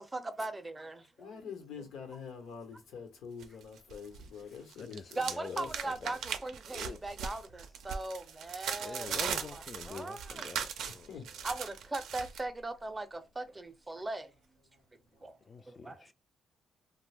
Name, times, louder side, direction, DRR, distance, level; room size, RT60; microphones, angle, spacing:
voice 1, 0.1-0.9 5.2-7.4 7.9-9.6 9.9-10.2 11.4-13.1 13.4-14.2 15.9-16.0, right 2 dB, 20° right, 0.5 m, -38 dB
voice 2, 1.2-5.2 5.5-5.7 11.1-11.2, left 6 dB, 85° left, 1.0 m, -45 dB
sound 1, 3.4-4.3 4.6-12.4, right 7 dB, 80° right, 0.4 m, -39 dB
voice 3, 4.8-5.6 6.0-6.2 6.7-7.0 8.8-11.1 15.5-16.1, left 5 dB, 40° left, 0.3 m, -45 dB
2.4 x 2.1 x 3.3 m
cardioid pair, 90°, 0 cm